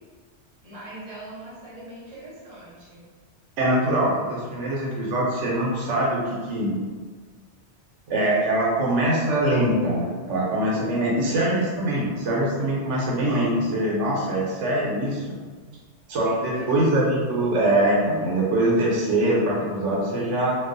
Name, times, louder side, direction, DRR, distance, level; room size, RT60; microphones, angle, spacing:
voice 1, 0.6-3.0 11.3-11.7 16.2-17.0, right 1 dB, 35° right, -7 dB, 0.8 m, -40 dB
voice 2, 3.6-6.8 8.1-15.2 16.1-20.6, right 1 dB, 80° right, -4 dB, 0.9 m, -23 dB
2.3 x 2.3 x 2.5 m, 1.5 s
omnidirectional pair, 1.2 m